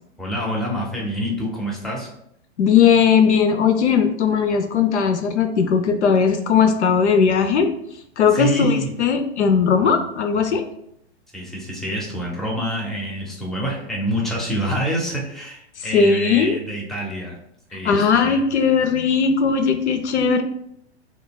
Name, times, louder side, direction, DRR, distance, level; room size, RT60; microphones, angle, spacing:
voice 1, 0.2-2.1 8.3-8.9 11.3-17.4 17.7-18.4, right 1 dB, ahead, -3 dB, 0.6 m, -26 dB
voice 2, 2.6-7.7 8.2-10.7 15.8-16.5 17.8-20.4, left 6 dB, 80° left, 7 dB, 0.5 m, -18 dB
5.0 x 2.2 x 2.3 m, 0.73 s
hypercardioid pair, 110°, 34 cm